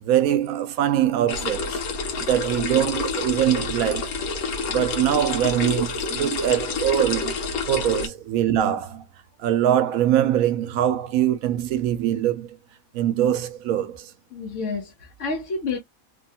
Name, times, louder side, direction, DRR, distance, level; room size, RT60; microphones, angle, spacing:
voice 1, 0.0-1.8 2.2-4.1 4.7-7.4 7.7-9.1 9.4-12.6 12.9-14.1, right 11 dB, 80° right, 1.0 m, -23 dB
sound 1, 1.3-8.1, left 4 dB, 85° left, 1.3 m, -28 dB
voice 2, 14.3-15.8, left 4 dB, 65° left, 1.1 m, -29 dB
3.2 x 2.2 x 2.7 m
omnidirectional pair, 1.5 m